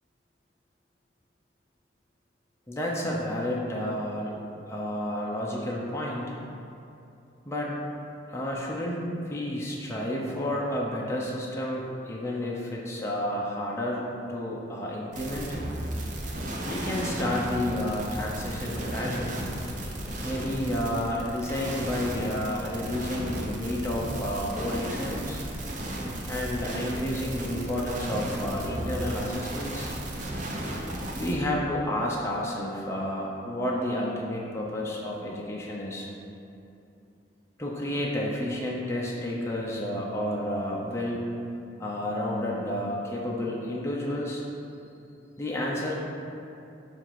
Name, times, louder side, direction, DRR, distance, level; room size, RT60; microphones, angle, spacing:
voice 1, 2.7-4.4 4.7-6.3 7.5-7.7 8.3-15.5 16.6-19.5 20.2-25.4 26.3-29.9 31.2-36.1 37.6-41.3 41.8-44.4 45.4-45.9, left 1 dB, 15° left, -4 dB, 0.6 m, -31 dB
sound 1, 15.1-31.3, right 1 dB, 45° right, 0.7 m, -34 dB
7.3 x 2.6 x 5.7 m, 2.7 s
head